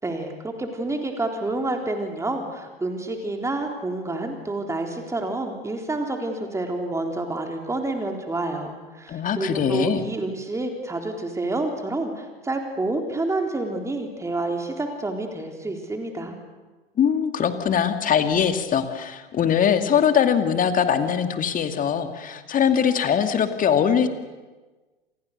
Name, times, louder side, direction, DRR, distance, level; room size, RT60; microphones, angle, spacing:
voice 1, 0.0-16.4, right 2 dB, 10° right, 3 dB, 3.8 m, -28 dB
voice 2, 9.1-10.0 17.0-24.1, left 8 dB, 25° left, 8 dB, 2.5 m, -22 dB
29.5 x 27.5 x 6.8 m, 1.2 s
figure-of-eight pair, 90°, 31 cm